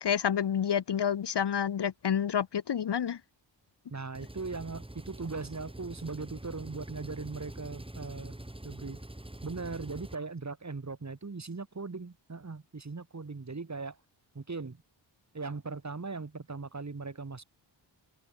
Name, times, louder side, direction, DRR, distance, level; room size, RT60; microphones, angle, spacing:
voice 1, 0.0-3.2, left 8 dB, 60° left, 0.9 m, -29 dB
voice 2, 3.9-8.3 8.6-9.0 9.4-14.0 14.3-14.8 15.3-17.4, right 4 dB, 35° right, 3.6 m, -39 dB
Engine, 4.1-10.2, right 1 dB, 10° right, 5.3 m, -45 dB
wide cardioid pair, 120°, 46 cm